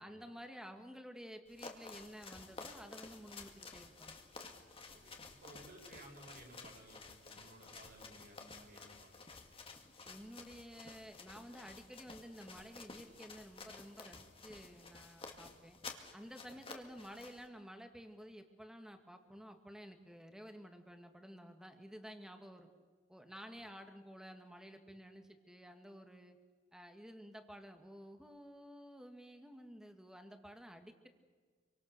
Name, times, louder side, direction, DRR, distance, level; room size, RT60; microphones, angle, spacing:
voice 1, 0.0-4.2 10.1-15.8 16.1-22.7 23.1-26.4 26.7-31.1, equal, 5° right, 6 dB, 2.0 m, -52 dB
sound 1, 1.5-17.5, left 4 dB, 30° left, 2.3 m, -53 dB
voice 2, 4.9-9.3 10.1-10.3 16.5-16.6 23.5-23.7, right 1 dB, 50° right, 1 dB, 5.7 m, -58 dB
27.0 x 24.5 x 6.8 m, 1.5 s
head